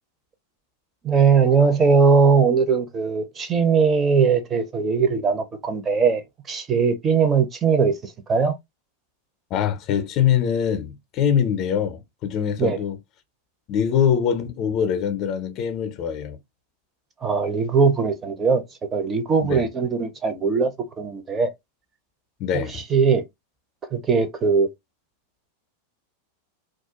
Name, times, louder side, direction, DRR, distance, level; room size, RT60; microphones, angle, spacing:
voice 1, 1.0-8.6 12.6-12.8 17.2-18.6 18.9-20.7 21.0-21.5 22.5-23.2 23.9-24.7, right 5 dB, 20° right, 0.5 m, -20 dB
voice 2, 9.5-13.0 13.7-16.4 19.4-19.6 22.4-22.8, left 8 dB, 40° left, 0.5 m, -23 dB
2.3 x 2.1 x 2.8 m
figure-of-eight pair, 90°, 0 cm